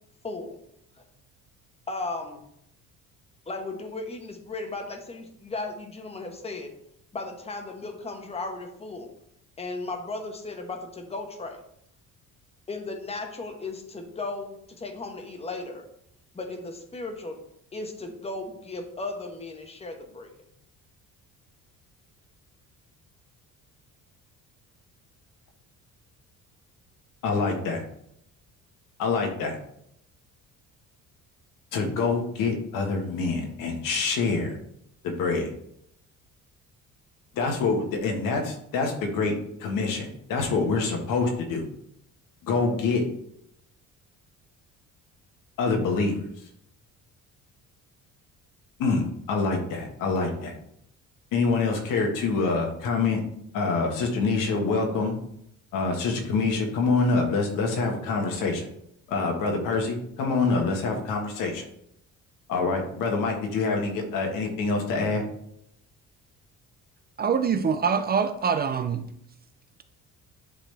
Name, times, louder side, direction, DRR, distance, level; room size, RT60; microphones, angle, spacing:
voice 1, 0.2-0.5 1.9-2.4 3.5-6.7 7.1-9.1 9.6-11.6 12.7-15.8 16.3-17.4 17.7-20.3, left 3 dB, 20° left, 4 dB, 1.1 m, -35 dB
voice 2, 27.2-27.8 29.0-29.6 31.7-34.6 35.0-35.5 37.3-39.3 39.6-41.6 42.4-43.0 45.6-46.3 48.8-50.5 51.3-53.2 53.5-55.2 55.7-58.7 59.1-61.7 62.5-65.2, left 4 dB, 85° left, 2 dB, 1.7 m, -26 dB
voice 3, 67.2-69.0, right 6 dB, 30° right, 8 dB, 0.5 m, -24 dB
10.0 x 4.0 x 3.4 m, 0.73 s
cardioid pair, 135°, 32 cm